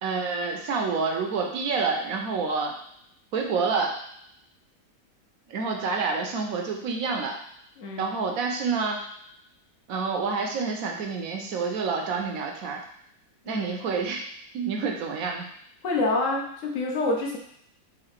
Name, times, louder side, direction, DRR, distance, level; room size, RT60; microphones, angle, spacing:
voice 1, 0.0-2.7 3.3-3.9 5.5-7.3 8.0-9.0 9.9-12.8 13.5-14.2 14.5-15.5, right 4 dB, 65° right, 1 dB, 1.0 m, -28 dB
voice 2, 7.8-8.1 13.4-13.7 15.8-17.4, left 2 dB, 55° left, 0 dB, 1.0 m, -27 dB
3.9 x 2.8 x 4.3 m, 0.71 s
omnidirectional pair, 1.9 m